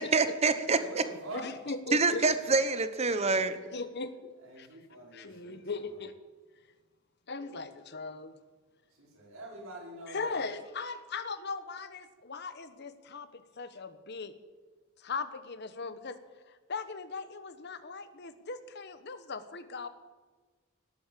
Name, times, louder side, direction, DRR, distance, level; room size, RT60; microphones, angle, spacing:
voice 1, 0.0-0.8 1.9-3.6, right 3 dB, 30° right, 11 dB, 1.0 m, -26 dB
voice 2, 0.8-1.6 2.4-2.5 4.4-6.0 8.9-10.4, right 1 dB, 90° right, -3 dB, 5.4 m, -45 dB
voice 3, 1.4-2.3 3.2-3.3 3.7-4.3 4.6-4.7 5.1-6.1 7.3-8.3 10.1-14.3 15.0-16.2 16.7-19.9, left 4 dB, 55° left, 12 dB, 1.1 m, -39 dB
18.5 x 8.4 x 7.5 m, 1.4 s
head